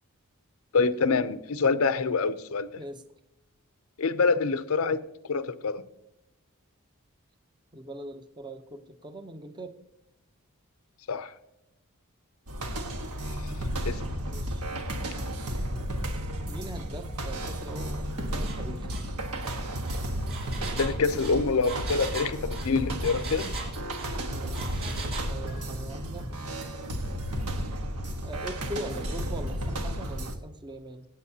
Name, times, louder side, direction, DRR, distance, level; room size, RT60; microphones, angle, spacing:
voice 1, 0.7-2.7 4.0-5.8 11.1-11.3 13.8-14.0 20.7-23.5, left 4 dB, 70° left, 13 dB, 0.6 m, -26 dB
voice 2, 7.7-9.8 14.1-14.7 16.5-18.9 24.2-24.9 25.2-26.3 28.2-31.1, right 1 dB, 20° right, 7 dB, 0.7 m, -41 dB
sound 1, 12.5-30.3, equal, 90° right, 1.4 m, -33 dB
Engine, 18.4-18.6 18.9-19.1 19.4-24.1 24.5-25.3, right 4 dB, 60° right, 3.9 m, -39 dB
25.5 x 8.7 x 2.8 m, 0.87 s
head